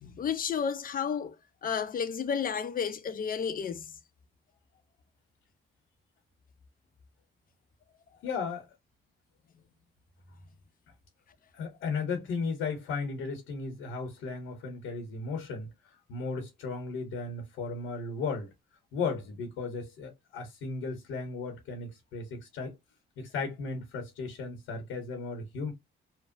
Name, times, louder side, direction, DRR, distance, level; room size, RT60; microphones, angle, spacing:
voice 1, 0.0-1.4 1.6-4.0, left 7 dB, 45° left, 0.6 m, -32 dB
voice 2, 8.2-8.7 11.5-15.7 16.1-18.5 18.9-22.7 23.2-25.7, left 4 dB, 90° left, 1.0 m, -35 dB
2.9 x 2.1 x 2.5 m
cardioid pair, 90°, 20 cm